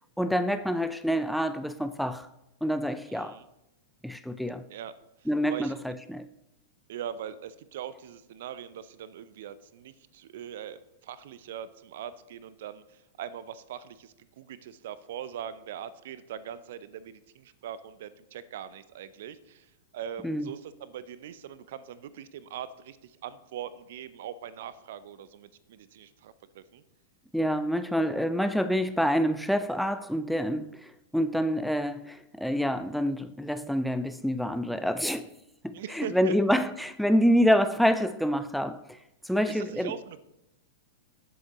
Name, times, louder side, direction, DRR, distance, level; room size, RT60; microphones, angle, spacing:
voice 1, 0.2-2.3 2.6-3.4 4.0-4.7 5.3-6.3 20.2-20.5 27.3-35.3 35.6-39.0 39.2-39.9, equal, ahead, 0.4 m, -27 dB
voice 2, 3.1-3.5 4.7-4.9 5.2-5.7 6.9-26.8 35.7-36.4 39.5-40.2, right 9 dB, 55° right, 0.6 m, -41 dB
18.0 x 7.8 x 3.0 m
figure-of-eight pair, 100°, 0 cm